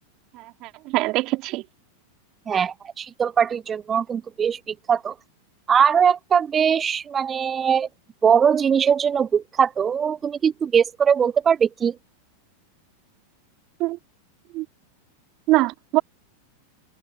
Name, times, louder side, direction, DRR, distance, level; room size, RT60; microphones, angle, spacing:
voice 1, 0.3-1.6 13.8-14.0 14.5-14.7 15.5-16.0, right 20 dB, 40° right, 2.3 m, -23 dB
voice 2, 2.5-5.1 5.7-7.9 8.2-12.0, right 7 dB, 20° right, 1.2 m, -21 dB
figure-of-eight pair, 90°, 0 cm